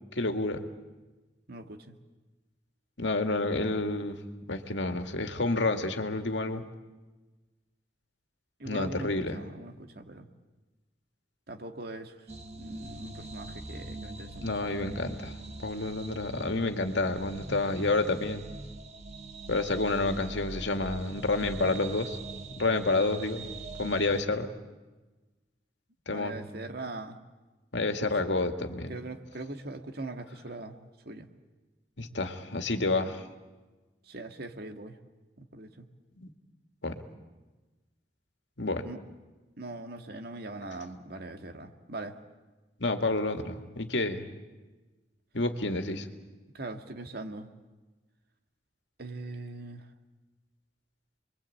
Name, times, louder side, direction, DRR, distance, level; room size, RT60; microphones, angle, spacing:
voice 1, 0.1-0.6 3.0-4.2 4.5-6.6 8.7-9.4 14.4-15.3 15.6-18.4 19.5-22.2 22.5-23.4 23.8-24.5 26.1-26.4 27.7-28.9 32.0-33.3 36.2-36.3 36.8-37.0 38.6-38.9 42.8-44.3 45.3-46.1, left 2 dB, 80° left, 6 dB, 2.1 m, -29 dB
voice 2, 1.5-1.9 8.6-10.3 11.5-12.2 12.6-14.9 26.1-27.2 27.9-28.2 28.9-30.8 31.1-31.3 34.1-35.0 35.4-35.9 38.8-39.0 39.6-42.1 46.5-47.5 49.0-49.9, right 2 dB, 60° right, 5 dB, 2.0 m, -41 dB
sound 1, 12.3-24.2, right 2 dB, 35° right, 1.5 m, -42 dB
29.5 x 22.5 x 8.6 m, 1.2 s
head